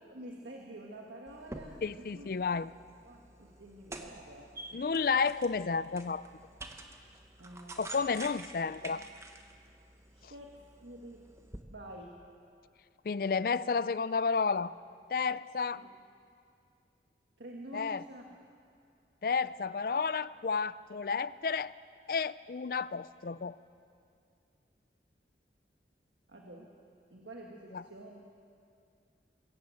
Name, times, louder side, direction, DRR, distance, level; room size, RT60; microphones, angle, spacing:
voice 1, 0.0-2.3 3.0-4.6 7.4-8.2 8.9-9.0 10.1-11.3 11.7-12.2 15.8-15.9 17.4-18.4 26.3-26.7 27.1-28.2, right 1 dB, 85° right, 0 dB, 1.6 m, -48 dB
sound 1, 1.3-11.6, right 2 dB, 15° right, 1.1 m, -49 dB
voice 2, 1.8-2.7 4.7-6.2 7.8-9.1 13.0-14.7 15.1-15.8 17.7-18.0 19.2-21.7 22.1-23.6 27.7-27.8, left 5 dB, 55° left, 17 dB, 0.4 m, -31 dB
22.5 x 14.5 x 8.4 m, 2.5 s
head